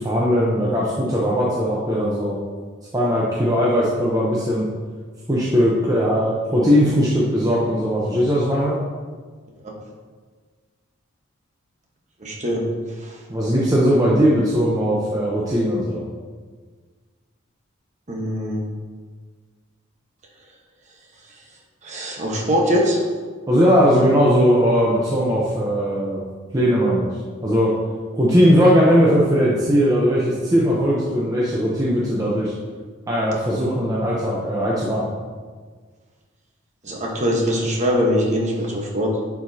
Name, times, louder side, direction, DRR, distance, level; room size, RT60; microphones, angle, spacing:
voice 1, 0.0-2.4 2.9-4.7 5.3-8.8 13.3-16.0 23.5-26.2 26.5-27.1 27.4-27.7 28.1-32.5 33.1-35.1, equal, 15° right, -6 dB, 0.8 m, -19 dB
voice 2, 12.2-12.7 13.0-13.2 18.1-18.6 21.8-23.0 36.8-39.2, equal, 35° right, -1 dB, 1.2 m, -22 dB
9.6 x 4.9 x 2.8 m, 1.5 s
head